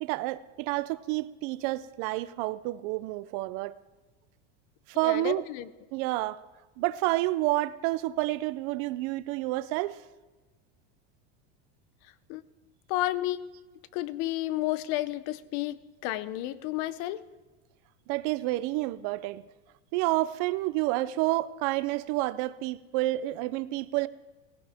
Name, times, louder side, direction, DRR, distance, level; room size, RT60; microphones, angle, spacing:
voice 1, 0.0-3.7 4.9-5.4 5.9-6.4 6.8-10.0 18.1-19.4 19.9-24.1, right 18 dB, 50° right, 0.5 m, -29 dB
voice 2, 5.0-5.7 12.3-12.4 12.9-13.4 13.9-17.2, left 15 dB, 50° left, 0.7 m, -31 dB
18.0 x 16.5 x 3.5 m
supercardioid pair, 160°, 33 cm